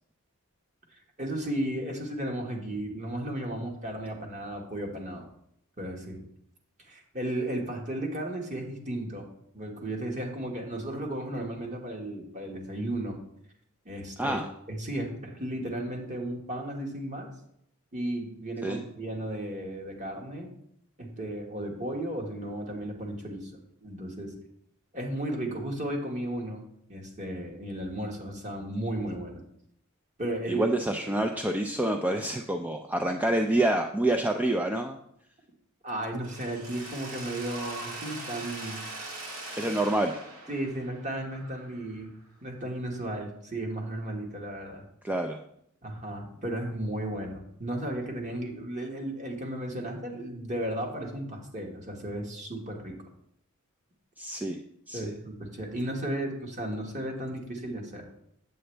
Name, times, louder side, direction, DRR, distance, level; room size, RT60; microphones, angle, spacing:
voice 1, 1.2-5.3 5.8-6.2 6.8-9.3 9.5-13.2 13.8-14.4 14.7-17.3 17.9-20.5 21.0-23.5 23.8-24.3 24.9-26.6 26.9-29.4 30.2-30.7 35.8-38.8 40.5-42.1 42.4-44.8 45.8-52.9 54.9-58.1, right 1 dB, 35° right, 1 dB, 1.5 m, -34 dB
voice 2, 30.5-35.0 39.6-40.2 45.0-45.4 54.2-54.6 54.9-55.0, right 1 dB, 10° right, 4 dB, 0.3 m, -27 dB
Mechanisms, 36.2-42.1, right 2 dB, 85° right, 1.8 m, -41 dB
8.0 x 7.7 x 3.3 m, 0.74 s
head